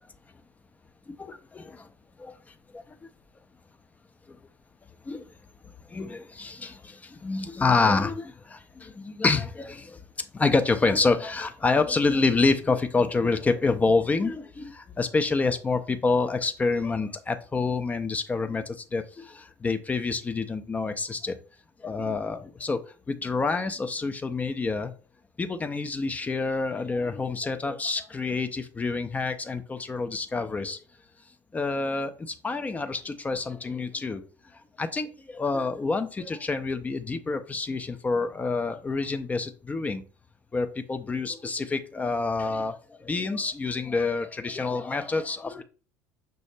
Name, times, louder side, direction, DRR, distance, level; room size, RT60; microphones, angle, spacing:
voice 1, 1.1-1.9 2.2-2.3 2.7-2.8 4.3-4.4 5.1-5.3 5.9-10.0 10.3-21.4 21.8-22.8 23.1-24.9 25.4-30.8 31.5-34.2 34.8-40.0 40.5-45.6, left 3 dB, 15° left, 0.3 m, -27 dB
5.5 x 2.0 x 3.1 m
figure-of-eight pair, 70°, 9 cm